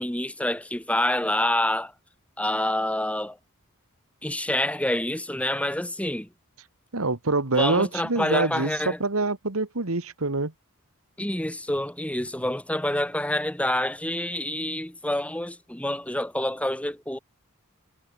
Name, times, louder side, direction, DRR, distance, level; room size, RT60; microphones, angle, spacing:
voice 1, 0.0-1.9 2.4-3.4 4.2-6.3 7.5-9.0 11.2-17.2, left 1 dB, 5° left, 2.0 m, -27 dB
voice 2, 6.9-10.5, right 3 dB, 70° right, 1.9 m, -25 dB
head